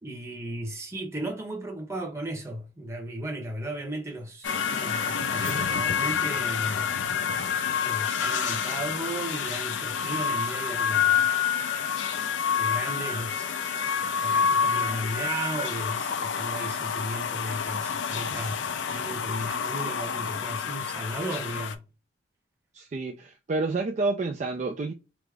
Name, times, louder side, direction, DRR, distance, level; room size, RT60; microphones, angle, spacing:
voice 1, 0.0-6.9 7.8-11.3 12.6-13.5 14.2-21.8, right 1 dB, 15° right, 0.8 m, -35 dB
sound 1, 4.4-21.7, left 7 dB, 70° left, 0.5 m, -28 dB
voice 2, 22.7-24.9, right 3 dB, 35° right, 0.3 m, -29 dB
3.6 x 2.0 x 3.2 m
head